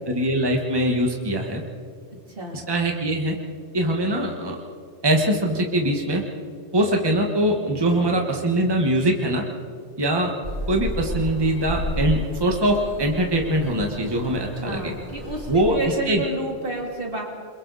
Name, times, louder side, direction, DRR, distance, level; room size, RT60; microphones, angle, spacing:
voice 1, 0.1-1.6 2.7-3.3 3.7-4.6 5.0-6.2 6.7-9.4 10.0-10.3 10.7-14.9 15.5-16.2, right 1 dB, 20° right, 1 dB, 1.7 m, -22 dB
voice 2, 2.3-2.6 14.6-17.2, right 2 dB, 50° right, -1 dB, 3.4 m, -30 dB
sound 1, 10.4-15.7, equal, 70° left, 5.3 m, -33 dB
29.0 x 22.5 x 4.2 m, 2.1 s
omnidirectional pair, 1.2 m